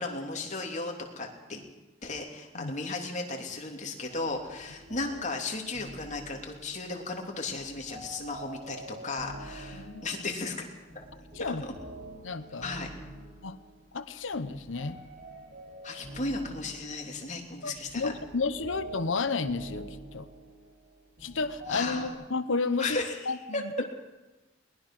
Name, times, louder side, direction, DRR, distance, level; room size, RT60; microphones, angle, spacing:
voice 1, 0.0-1.6 2.0-10.7 10.9-11.0 11.6-11.7 12.6-12.9 15.8-18.1 21.7-22.1 22.8-23.6, left 3 dB, 40° left, 2 dB, 3.0 m, -35 dB
sound 1, 4.0-22.1, right 1 dB, 45° right, 5.5 m, -46 dB
voice 2, 12.2-12.7 13.4-13.6 13.9-15.0 15.9-16.0 17.6-20.3 21.2-23.0 23.3-23.4 23.8-23.9, left 4 dB, 80° left, 11 dB, 1.0 m, -31 dB
21.5 x 20.0 x 6.2 m, 1.1 s
head